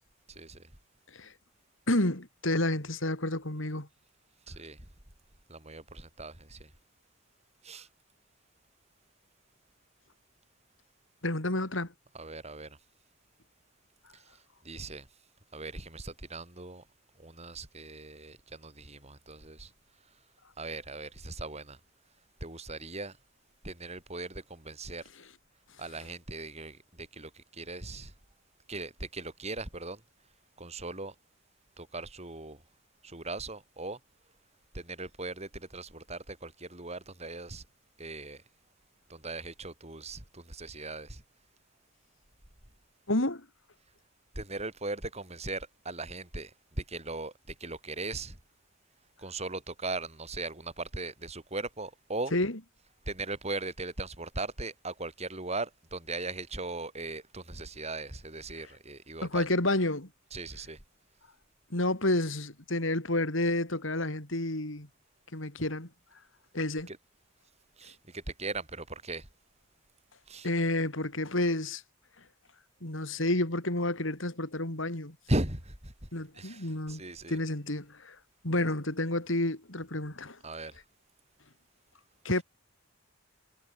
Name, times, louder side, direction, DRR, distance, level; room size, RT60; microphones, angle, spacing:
voice 1, 0.3-0.6 4.5-4.9 5.5-6.7 7.6-7.9 12.1-12.8 14.1-14.4 14.6-15.1 15.5-16.8 17.2-19.7 20.6-21.8 22.4-23.2 23.6-25.0 25.8-28.1 28.7-30.0 30.6-31.1 31.8-32.6 33.0-34.0 34.7-37.6 38.0-38.4 39.1-41.2 44.4-48.4 49.2-52.3 53.1-59.4 60.3-60.8 66.9-67.0 67.8-69.3 70.3-70.5 75.3-75.9 76.3-77.4 80.4-80.8, right 2 dB, 30° right, 5.6 m, -38 dB
voice 2, 1.9-3.9 11.2-11.9 43.1-43.5 52.3-52.6 59.2-60.1 61.7-64.9 65.3-65.9 66.5-66.9 70.4-71.8 72.8-75.2 76.1-77.0 77.3-78.2 78.4-80.4 82.2-82.4, left 1 dB, 65° left, 3.6 m, -30 dB
head